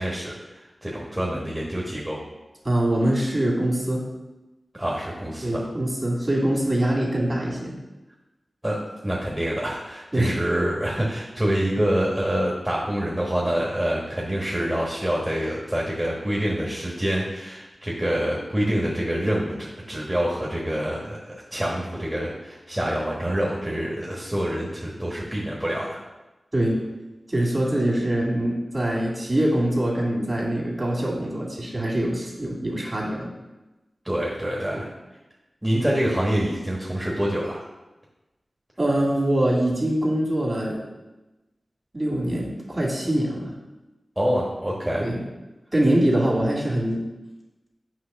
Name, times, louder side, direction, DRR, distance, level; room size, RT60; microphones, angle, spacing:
voice 1, 0.0-2.2 4.7-5.6 8.6-8.8 9.0-26.0 34.0-34.9 35.6-37.6 44.2-45.1, equal, 15° right, -4 dB, 1.3 m, -26 dB
voice 2, 2.6-4.0 5.4-7.7 10.1-10.3 26.5-26.8 27.3-33.3 34.7-34.8 38.8-40.8 41.9-43.5 45.0-45.2 45.7-47.0, right 1 dB, 35° right, -3 dB, 2.4 m, -23 dB
7.9 x 3.1 x 5.7 m, 1.1 s
wide cardioid pair, 55°, 0 cm